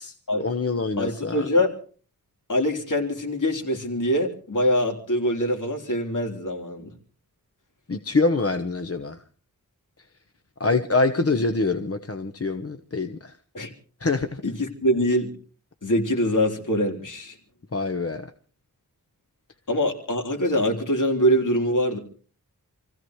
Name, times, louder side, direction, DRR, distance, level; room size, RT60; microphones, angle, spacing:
voice 1, 0.4-1.5 7.9-9.2 10.6-13.3 14.0-14.4 17.7-18.3, left 3 dB, 40° left, 1.1 m, -25 dB
voice 2, 1.0-1.7 2.5-6.9 13.5-13.7 14.4-15.3 15.8-17.3 19.7-22.0, equal, 60° left, 3.9 m, -24 dB
28.5 x 15.5 x 3.2 m
wide cardioid pair, 90°, 35 cm